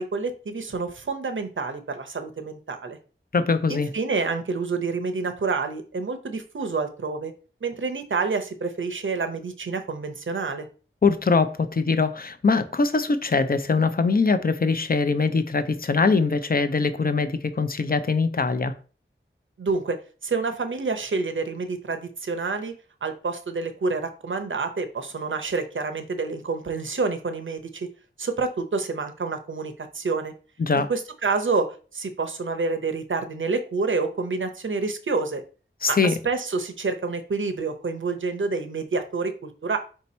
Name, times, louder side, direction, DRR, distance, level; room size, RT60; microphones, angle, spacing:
voice 1, 0.0-3.0 3.7-7.3 7.6-10.7 19.6-20.0 20.2-22.7 23.0-27.9 28.2-30.3 30.7-35.4 35.9-39.8, right 4 dB, 70° right, 0.7 m, -28 dB
voice 2, 3.3-3.9 11.0-18.7 30.6-30.9 35.8-36.2, left 4 dB, 45° left, 0.5 m, -22 dB
4.4 x 2.8 x 4.2 m
wide cardioid pair, 50°, 21 cm